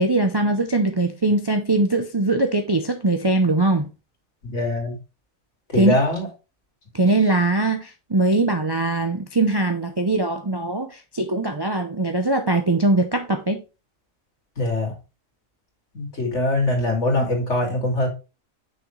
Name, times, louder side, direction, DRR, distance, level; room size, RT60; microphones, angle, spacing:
voice 1, 0.0-3.9 5.7-5.9 6.9-13.6, right 2 dB, 25° right, 0.5 m, -21 dB
voice 2, 4.4-5.0 5.7-6.3 14.6-14.9 15.9-18.1, left 2 dB, 60° left, 3.0 m, -22 dB
6.4 x 6.2 x 3.2 m
omnidirectional pair, 1.4 m